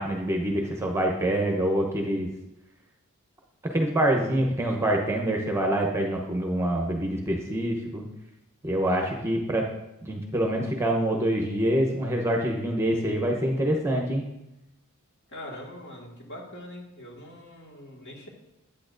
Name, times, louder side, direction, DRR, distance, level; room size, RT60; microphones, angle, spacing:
voice 1, 0.0-2.3 3.6-8.0 8.6-9.7 10.0-14.2, right 1 dB, 10° right, 1 dB, 0.8 m, -26 dB
voice 2, 15.3-18.3, left 1 dB, 55° left, -2 dB, 1.8 m, -42 dB
8.6 x 8.6 x 2.6 m, 0.89 s
head